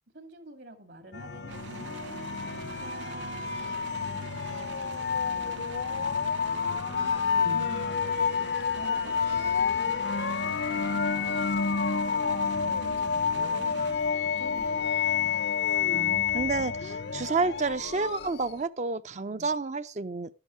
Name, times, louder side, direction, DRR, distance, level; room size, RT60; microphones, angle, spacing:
voice 1, 0.1-10.0 10.4-11.8 12.6-15.4 19.2-19.5, right 1 dB, 70° right, 2.3 m, -49 dB
sound 1, 1.1-18.6, left 6 dB, 65° left, 0.7 m, -29 dB
sound 2, 1.5-14.5, right 5 dB, 85° right, 0.8 m, -44 dB
voice 2, 15.9-20.3, right 3 dB, 40° right, 0.5 m, -30 dB
12.0 x 9.8 x 4.9 m
head